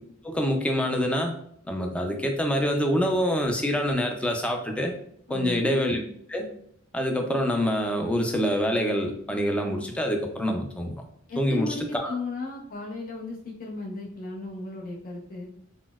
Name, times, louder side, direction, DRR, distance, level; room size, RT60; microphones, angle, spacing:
voice 1, 0.2-1.3 1.7-4.9 5.3-6.0 6.3-6.5 6.9-11.0 11.4-11.7 11.9-12.1, equal, 5° left, 2 dB, 0.3 m, -26 dB
voice 2, 5.3-5.6 11.3-15.5, left 3 dB, 45° left, -2 dB, 0.6 m, -35 dB
4.0 x 2.0 x 2.2 m, 0.67 s
head